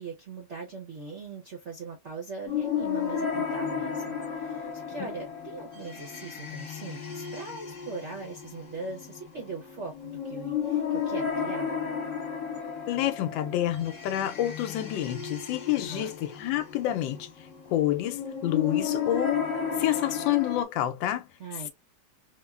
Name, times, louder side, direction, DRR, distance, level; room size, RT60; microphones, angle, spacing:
voice 1, 0.0-11.7 15.7-16.1 21.4-21.7, right 3 dB, 55° right, 0.8 m, -40 dB
sound 1, 2.5-20.6, left 7 dB, 45° left, 1.3 m, -33 dB
voice 2, 12.9-17.3 17.7-21.3, left 13 dB, 85° left, 1.3 m, -28 dB
3.4 x 2.2 x 2.3 m
omnidirectional pair, 2.0 m